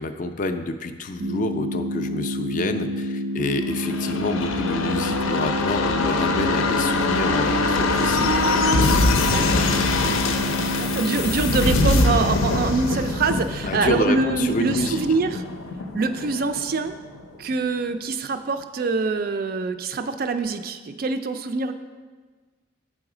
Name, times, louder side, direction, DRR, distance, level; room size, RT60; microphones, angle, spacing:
voice 1, 0.0-8.7 9.1-10.3 13.7-15.0, left 2 dB, 40° left, 8 dB, 0.3 m, -28 dB
sound 1, 1.2-11.2, left 1 dB, 85° right, 0.6 m, -28 dB
sound 2, 3.7-17.2 17.5-17.6, left 3 dB, 90° left, 0.6 m, -23 dB
voice 2, 9.2-9.7 10.5-15.4 15.9-16.9 17.4-21.7, right 4 dB, 45° right, 9 dB, 0.3 m, -24 dB
7.7 x 4.0 x 4.8 m, 1.4 s
head